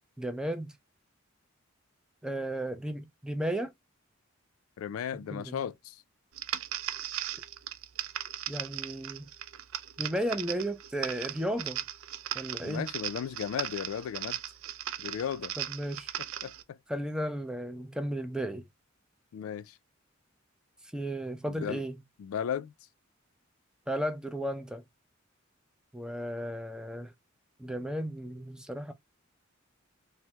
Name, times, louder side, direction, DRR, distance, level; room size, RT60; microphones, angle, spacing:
voice 1, 0.2-0.7 2.2-3.7 5.3-5.6 8.5-9.3 10.0-11.8 12.3-12.9 15.6-16.1 16.9-18.7 20.9-22.0 23.9-24.8 25.9-27.1 27.6-28.9, right 1 dB, 5° right, 0.4 m, -34 dB
voice 2, 4.8-6.0 12.6-14.4 15.0-15.5 16.4-16.8 19.3-19.8 21.5-21.8 22.2-22.7, left 8 dB, 85° left, 0.3 m, -35 dB
sound 1, 6.3-16.6, right 12 dB, 80° right, 0.4 m, -38 dB
3.3 x 2.1 x 2.8 m
head